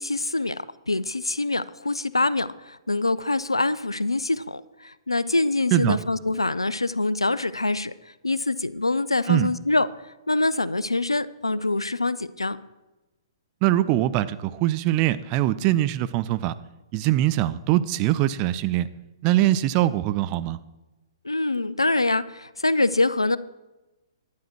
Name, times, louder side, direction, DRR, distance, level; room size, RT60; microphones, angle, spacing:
voice 1, 0.0-7.9 8.2-12.6 21.2-23.4, left 2 dB, 90° left, 17 dB, 0.5 m, -25 dB
voice 2, 13.6-16.5 16.9-18.9 19.2-20.6, right 14 dB, 30° right, 14 dB, 0.5 m, -22 dB
11.5 x 9.3 x 4.5 m, 1.1 s
figure-of-eight pair, 120°, 3 cm